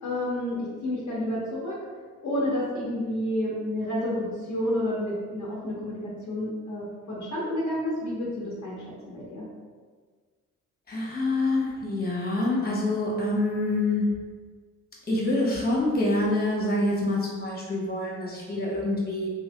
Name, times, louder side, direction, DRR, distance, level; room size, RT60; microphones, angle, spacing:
voice 1, 0.0-1.8 2.2-9.5, left 1 dB, 55° left, -5 dB, 1.0 m, -30 dB
voice 2, 10.9-14.1 15.1-19.3, left 2 dB, 30° left, -4 dB, 1.3 m, -26 dB
3.1 x 2.7 x 3.5 m, 1.5 s
supercardioid pair, 70°, 34 cm